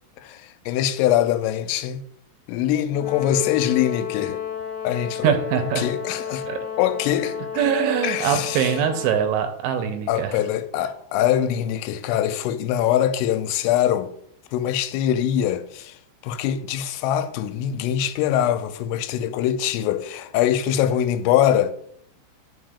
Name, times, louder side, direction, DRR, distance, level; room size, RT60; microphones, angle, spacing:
voice 1, 0.2-2.1 2.5-4.4 4.8-6.5 6.8-7.4 8.0-8.7 10.1-14.1 14.5-16.0 16.2-21.7, left 11 dB, 90° left, 3.2 m, -23 dB
Brass instrument, 2.9-9.3, left 9 dB, 65° left, 2.6 m, -31 dB
voice 2, 5.2-5.9 6.5-6.6 7.6-10.3, right 9 dB, 80° right, 2.9 m, -23 dB
9.0 x 6.7 x 2.4 m
omnidirectional pair, 5.7 m